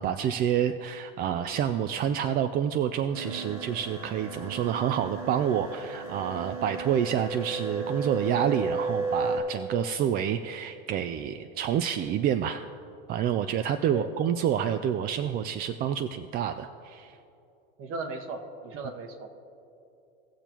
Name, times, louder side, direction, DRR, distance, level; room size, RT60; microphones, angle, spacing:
voice 1, 0.0-12.6 13.1-17.2, right 9 dB, 30° right, 10 dB, 0.4 m, -28 dB
sound 1, 3.1-9.4, right 3 dB, 80° right, 1.7 m, -34 dB
voice 2, 17.8-19.3, right 3 dB, 50° right, 6 dB, 1.4 m, -36 dB
18.5 x 6.8 x 3.0 m, 2.8 s
supercardioid pair, 115°, 29 cm